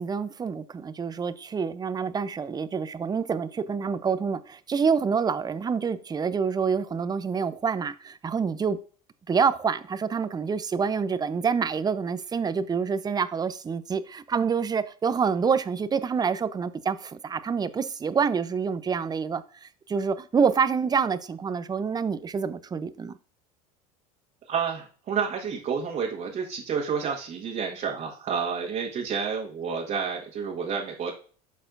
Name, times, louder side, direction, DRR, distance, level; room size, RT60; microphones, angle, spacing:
voice 1, 0.0-8.8 9.3-23.2, right 6 dB, 20° right, 0.6 m, -27 dB
voice 2, 24.5-31.1, right 6 dB, 40° right, 1.7 m, -30 dB
12.0 x 4.1 x 2.6 m
hypercardioid pair, 95°, 19 cm